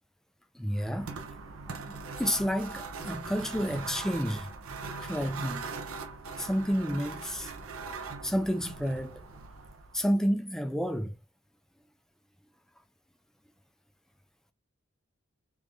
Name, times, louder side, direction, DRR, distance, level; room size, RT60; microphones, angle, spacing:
voice 1, 0.5-1.2 1.7-1.8 2.2-4.5 5.0-5.7 6.4-7.5 8.2-9.2 9.9-11.2, equal, ahead, 0.4 m, -30 dB
sound 1, 0.7-10.1, right 4 dB, 70° right, 0.7 m, -41 dB
3.4 x 2.6 x 3.2 m
head